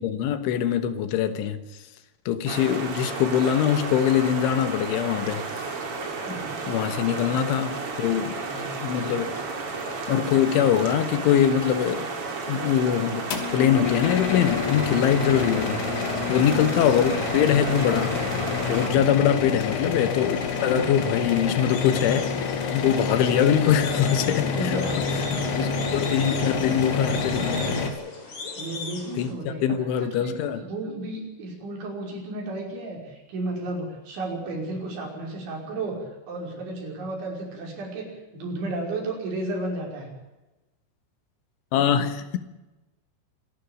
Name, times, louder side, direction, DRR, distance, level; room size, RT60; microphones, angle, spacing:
voice 1, 0.0-1.6 2.3-5.5 6.7-9.4 10.1-12.1 12.5-18.3 18.7-22.2 22.7-24.8 25.3-27.7 29.2-30.6 41.7-42.4, left 9 dB, 80° left, 3.7 m, -23 dB
sound 1, 2.5-18.9, right 4 dB, 35° right, 3.2 m, -32 dB
voice 2, 6.1-7.4 8.5-8.8 15.2-15.6 16.4-16.6 18.8-19.1 20.5-20.9 23.2-24.1 24.5-25.2 27.3-27.8 28.3-40.1, right 2 dB, 65° right, 7.9 m, -34 dB
sound 2, 13.3-27.9, left 5 dB, 60° left, 4.1 m, -28 dB
sound 3, 15.9-29.3, left 3 dB, 40° left, 4.6 m, -41 dB
26.0 x 12.5 x 9.2 m
omnidirectional pair, 5.7 m